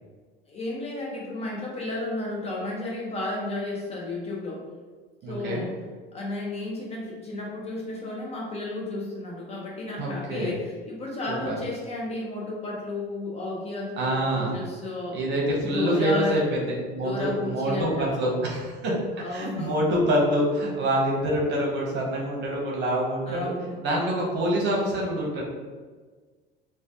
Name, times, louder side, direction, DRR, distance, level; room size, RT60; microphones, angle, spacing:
voice 1, 0.5-4.6 5.3-5.8 6.1-15.2 15.6-16.4 17.0-18.2 19.2-19.9 23.3-23.8, left 2 dB, 20° left, -3 dB, 0.6 m, -33 dB
voice 2, 5.2-5.7 10.0-10.5 11.4-11.5 14.0-14.5 15.1-19.0 19.3-23.5 23.8-25.4, right 1 dB, 40° right, -2 dB, 0.9 m, -26 dB
3.1 x 2.2 x 2.6 m, 1.4 s
figure-of-eight pair, 70°, 29 cm